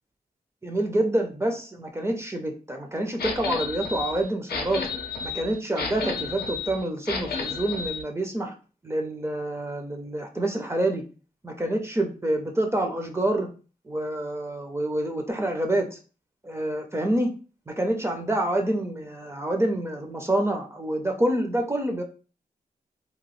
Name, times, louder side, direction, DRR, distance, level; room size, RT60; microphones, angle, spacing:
voice 1, 0.6-4.9 5.2-8.5 8.8-11.0 11.4-13.5 13.9-16.0 16.4-17.3 17.7-22.0, right 1 dB, 15° right, 3 dB, 0.4 m, -27 dB
sound 1, 3.2-8.0, left 5 dB, 85° left, 0.5 m, -32 dB
2.8 x 2.3 x 3.0 m, 0.36 s
wide cardioid pair, 140°, 16 cm